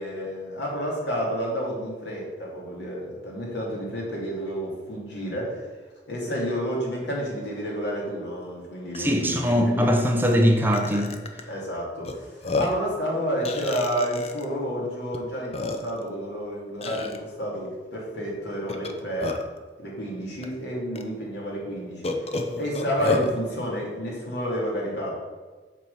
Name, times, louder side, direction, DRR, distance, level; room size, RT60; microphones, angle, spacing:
voice 1, 0.0-5.7 6.1-9.9 11.5-19.3 19.8-22.1 22.6-25.1, equal, 75° left, -3 dB, 2.9 m, -30 dB
Burping eructation, 8.9-9.0 9.4-9.6 10.2-10.4 10.7-11.4 12.0-12.1 12.4-12.9 13.4-14.4 15.1-15.2 15.5-16.1 16.8-17.2 18.7-19.6 20.4-20.5 20.9-21.0 22.0-23.3, left 3 dB, 35° left, 0.7 m, -30 dB
voice 2, 9.0-11.1, equal, 10° right, 3 dB, 0.8 m, -21 dB
7.6 x 4.7 x 7.0 m, 1.3 s
head